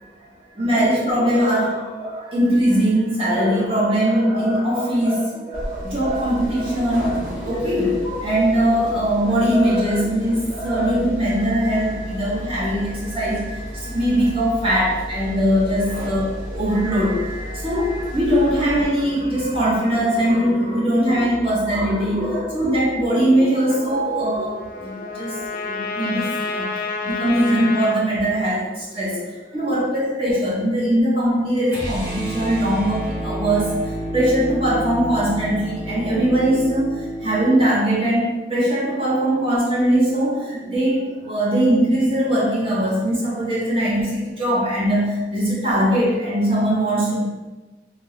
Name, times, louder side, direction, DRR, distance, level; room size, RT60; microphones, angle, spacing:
voice 1, 0.6-29.2 29.5-47.2, equal, 30° right, -7 dB, 0.8 m, -21 dB
sound 1, 5.5-18.9, equal, 50° right, 1.3 m, -33 dB
Trumpet, 23.7-28.0, left 4 dB, 50° left, 0.3 m, -29 dB
sound 2, 31.7-37.7, right 1 dB, 85° right, 1.2 m, -29 dB
3.0 x 2.8 x 3.0 m, 1.2 s
head